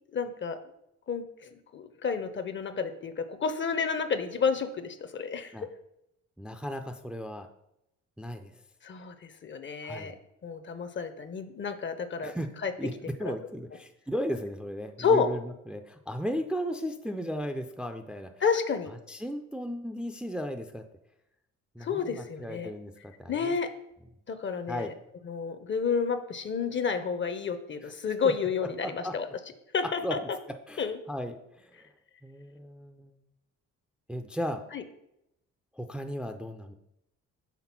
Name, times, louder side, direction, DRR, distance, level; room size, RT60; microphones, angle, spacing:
voice 1, 0.1-0.6 1.1-5.5 8.8-10.1 10.4-12.3 12.6-12.7 13.3-13.4 15.0-15.3 18.4-18.9 21.8-22.7 23.3-23.7 24.3-24.9 25.2-29.3 29.7-30.2 30.8-31.0 34.7-34.8, left 5 dB, 40° left, 10 dB, 0.7 m, -30 dB
voice 2, 6.4-7.5 8.2-8.5 9.8-10.1 12.2-12.5 12.8-12.9 13.2-18.3 19.1-20.8 21.7-23.5 24.7-24.9 28.8-29.1 30.0-30.1 30.7-31.9 32.2-33.1 34.1-34.6 35.7-36.7, equal, 5° right, 5 dB, 0.4 m, -36 dB
5.9 x 3.6 x 5.9 m, 0.83 s
cardioid pair, 90°, 30 cm